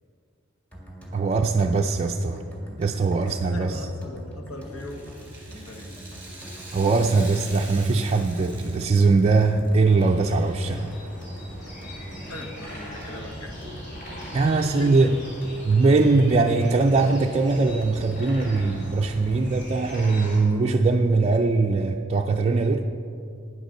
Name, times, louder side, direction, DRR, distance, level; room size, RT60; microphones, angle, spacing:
sound 1, 0.7-19.9, equal, 5° left, 1.9 m, -42 dB
voice 1, 1.1-2.4 2.8-3.8 6.7-10.9 14.3-15.2 15.7-22.9, right 3 dB, 30° right, 2 dB, 0.4 m, -21 dB
voice 2, 3.2-5.1 5.5-5.9 12.3-13.6 14.6-15.1, left 1 dB, 90° left, 4 dB, 1.3 m, -39 dB
Rattle (instrument), 4.7-9.9 10.2-10.3 11.2-11.3, right 2 dB, 10° right, 2.4 m, -44 dB
sound 2, 10.0-20.4, equal, 40° left, 3.0 m, -41 dB
9.7 x 7.8 x 6.5 m, 2.5 s
head